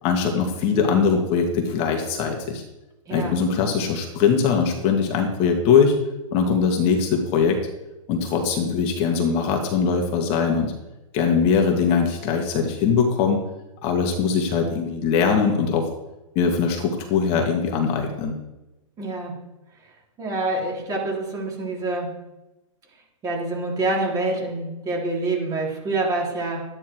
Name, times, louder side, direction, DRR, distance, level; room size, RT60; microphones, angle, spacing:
voice 1, 0.0-2.6 3.1-5.9 6.3-7.6 8.1-10.7 11.1-13.4 13.8-15.9 16.4-18.4, left 6 dB, 35° left, 2 dB, 1.9 m, -21 dB
voice 2, 3.1-3.4 19.0-19.3 20.2-22.1 23.2-26.7, right 2 dB, 20° right, -2 dB, 3.6 m, -26 dB
13.0 x 9.9 x 4.7 m, 0.99 s
hypercardioid pair, 135°, 17 cm